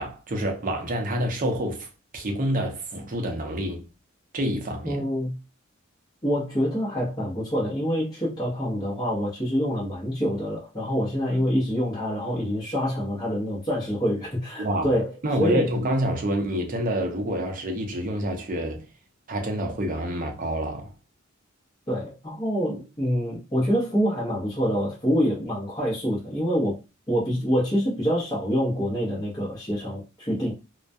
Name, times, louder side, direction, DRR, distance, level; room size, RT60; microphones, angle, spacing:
voice 1, 0.0-1.9 2.1-3.8 4.3-5.0 14.6-14.9 15.2-18.9 19.3-20.9, right 1 dB, 45° right, 0.6 m, -27 dB
voice 2, 4.8-5.4 6.2-15.1 15.4-15.6 21.9-26.7 27.1-30.5, equal, 20° left, 0.8 m, -26 dB
2.2 x 2.2 x 2.5 m
head